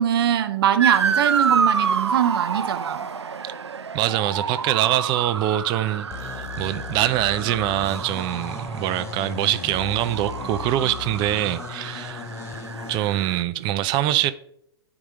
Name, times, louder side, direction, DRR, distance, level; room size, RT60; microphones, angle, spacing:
voice 1, 0.0-3.1, right 10 dB, 60° right, 0.8 m, -22 dB
Motor vehicle (road) / Siren, 0.8-13.4, right 6 dB, 90° right, 0.5 m, -28 dB
voice 2, 3.9-12.2 12.9-14.3, right 13 dB, 35° right, 0.5 m, -24 dB
sound 1, 6.1-13.0, left 8 dB, 20° left, 0.4 m, -37 dB
10.0 x 4.9 x 3.7 m
hypercardioid pair, 110°, 14 cm